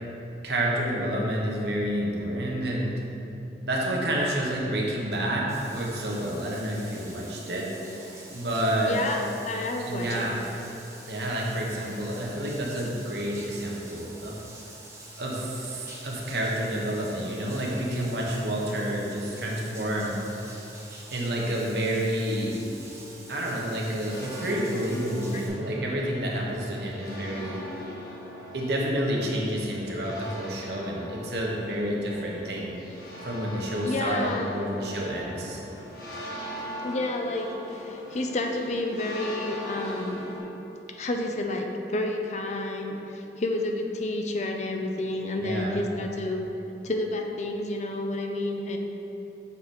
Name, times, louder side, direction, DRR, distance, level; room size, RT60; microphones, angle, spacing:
voice 1, 0.4-2.9 3.6-7.7 8.0-9.0 9.8-10.4 11.0-14.4 15.2-20.2 21.1-22.6 23.3-27.6 28.5-32.7 33.2-35.6 45.4-45.8, right 1 dB, 70° right, -3 dB, 1.2 m, -29 dB
Bathtub (filling or washing), 5.5-25.5, right 2 dB, 15° right, 1.0 m, -47 dB
voice 2, 8.9-10.3 25.3-25.5 33.8-34.5 36.8-40.3 40.9-46.4 46.8-48.8, left 2 dB, 40° left, 3 dB, 0.5 m, -30 dB
sound 1, 24.1-40.4, left 1 dB, 55° left, 1.5 m, -41 dB
7.2 x 4.7 x 4.3 m, 2.9 s
head